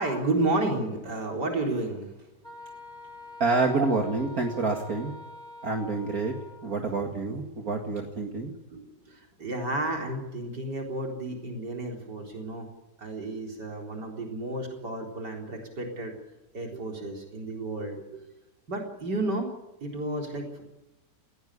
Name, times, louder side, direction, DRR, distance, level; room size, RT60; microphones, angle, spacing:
voice 1, 0.0-2.1 3.8-4.0 6.8-7.1 8.7-12.7 13.0-16.1 16.5-18.2 18.7-19.5 19.8-20.6, right 2 dB, 85° right, 1 dB, 4.7 m, -32 dB
Wind instrument woodwind instrument, 2.4-6.8, left 2 dB, 25° right, 3.2 m, -45 dB
voice 2, 3.4-5.1 5.6-6.3 6.6-8.5, right 3 dB, 60° right, 2 dB, 2.6 m, -27 dB
20.0 x 17.5 x 9.8 m, 1.0 s
omnidirectional pair, 1.8 m